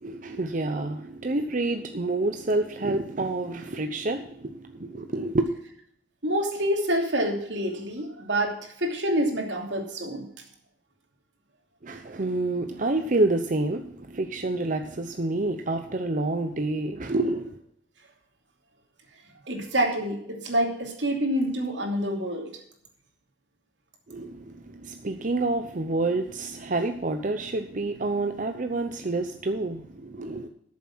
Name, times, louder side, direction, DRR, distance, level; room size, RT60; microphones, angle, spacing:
voice 1, 0.0-5.5 11.8-17.6 24.1-30.5, right 2 dB, 45° right, 7 dB, 0.8 m, -28 dB
voice 2, 6.2-10.3 19.5-22.5, right 1 dB, 80° right, 2 dB, 2.8 m, -27 dB
13.0 x 7.3 x 6.1 m, 0.68 s
head